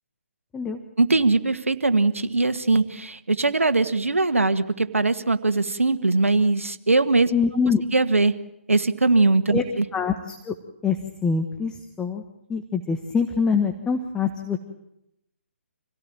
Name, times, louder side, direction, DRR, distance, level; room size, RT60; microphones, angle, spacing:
voice 1, 1.0-7.3 7.9-8.4 8.7-9.8, right 3 dB, 85° right, 10 dB, 1.6 m, -21 dB
voice 2, 7.3-7.8 9.5-9.6 9.9-10.5 10.8-12.2 12.5-14.6, left 5 dB, 10° left, 6 dB, 1.4 m, -24 dB
26.5 x 17.5 x 9.0 m, 0.85 s
figure-of-eight pair, 140°, 7 cm